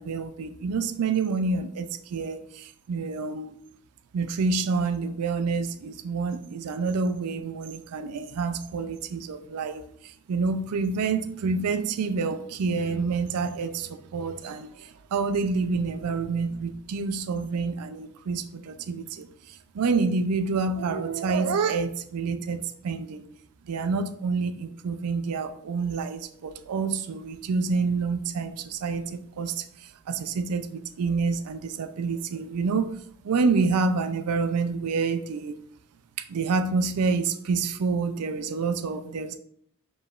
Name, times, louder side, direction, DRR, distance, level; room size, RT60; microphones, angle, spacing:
voice 1, 0.0-3.6 4.1-19.3 19.7-23.3 23.7-29.6 30.1-33.0 33.2-35.6 36.3-39.4, right 4 dB, 80° right, 10 dB, 0.4 m, -28 dB
4.8 x 3.2 x 2.4 m, 0.67 s
head